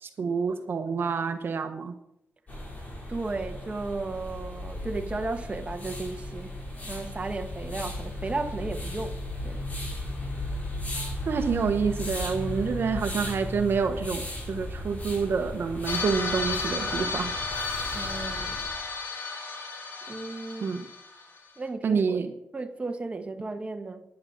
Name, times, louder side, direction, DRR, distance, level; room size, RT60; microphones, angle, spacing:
voice 1, 0.0-1.9 11.3-17.8 20.6-20.9 21.8-22.3, right 5 dB, 65° right, 1.1 m, -28 dB
sound 1, 2.5-18.7, left 1 dB, 40° left, 6.5 m, -36 dB
voice 2, 3.1-6.5 6.9-9.2 9.4-9.6 17.9-18.6 20.1-20.7 21.6-22.2 22.5-24.0, right 3 dB, 30° right, 1.5 m, -34 dB
sound 2, 15.9-21.4, left 4 dB, 60° left, 3.7 m, -33 dB
10.5 x 9.9 x 7.4 m
wide cardioid pair, 100°, 4 cm